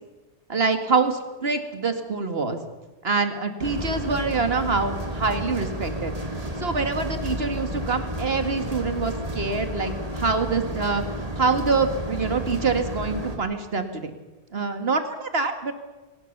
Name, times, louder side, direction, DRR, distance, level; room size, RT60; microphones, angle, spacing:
voice 1, 0.5-2.6 3.0-11.0 11.4-14.1 14.5-15.7, right 4 dB, 60° right, 7 dB, 2.2 m, -25 dB
sound 1, 3.6-13.4, equal, 35° right, 2.7 m, -31 dB
22.5 x 19.0 x 6.8 m, 1.2 s
omnidirectional pair, 1.1 m